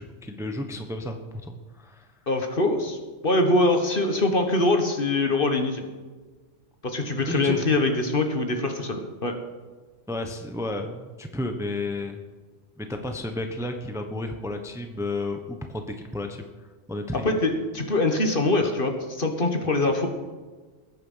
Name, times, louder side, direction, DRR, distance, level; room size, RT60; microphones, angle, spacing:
voice 1, 0.0-2.1 7.3-7.6 10.1-12.2 12.8-16.4 16.9-17.2, left 2 dB, 5° right, 5 dB, 1.0 m, -32 dB
voice 2, 2.3-3.0 3.2-5.9 6.8-9.4 17.1-20.1, left 2 dB, 45° left, 5 dB, 1.7 m, -23 dB
20.5 x 9.2 x 5.7 m, 1.3 s
omnidirectional pair, 1.3 m